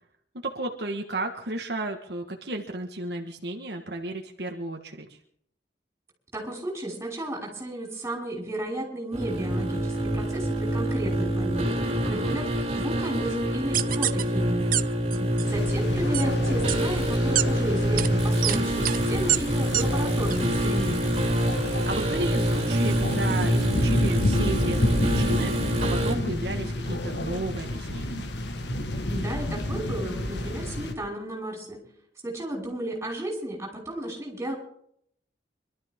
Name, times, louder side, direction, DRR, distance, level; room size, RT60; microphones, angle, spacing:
voice 1, 0.4-5.2 12.0-12.4 15.1-15.4 21.8-28.3, right 2 dB, 65° right, 2 dB, 1.5 m, -34 dB
voice 2, 6.3-11.8 12.1-12.5 12.7-14.7 15.5-21.2 29.1-31.8 32.2-34.5, right 1 dB, 15° right, -2 dB, 5.4 m, -33 dB
sound 1, 9.1-26.1, right 1 dB, 35° right, 3.4 m, -26 dB
sound 2, 13.7-14.2 14.7-14.8 15.1-15.5 16.1-16.2 16.7-16.8 17.4-17.5 18.0-18.1 18.4-18.6 18.8-19.0 19.3-19.4 19.7-19.8 20.3-20.4, right 13 dB, 50° right, 0.7 m, -24 dB
sound 3, 15.4-30.9, left 1 dB, 80° left, 1.6 m, -30 dB
25.0 x 12.5 x 3.7 m, 0.67 s
head